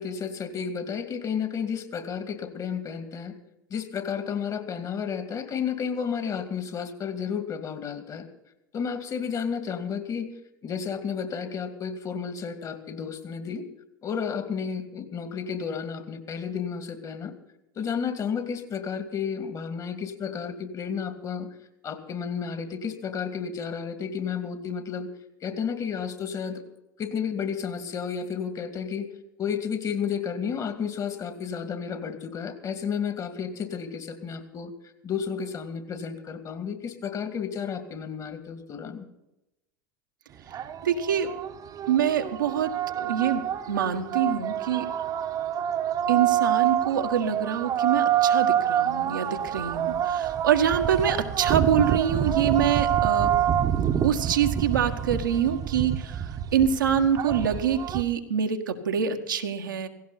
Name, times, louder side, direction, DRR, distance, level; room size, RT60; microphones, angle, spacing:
voice 1, 0.0-3.3 3.7-8.3 8.7-10.3 10.6-13.6 14.0-17.3 17.8-21.5 21.8-25.1 25.4-26.6 27.0-29.1 29.4-34.7 35.0-39.1, left 7 dB, 35° left, 8 dB, 2.5 m, -32 dB
sound 1, 40.5-58.0, right 9 dB, 35° right, 1.3 m, -27 dB
voice 2, 40.8-41.3 41.9-44.9 46.1-53.3 54.0-59.9, right 8 dB, 75° right, 4 dB, 1.6 m, -25 dB
17.0 x 17.0 x 4.2 m, 0.89 s
figure-of-eight pair, 80°, 11 cm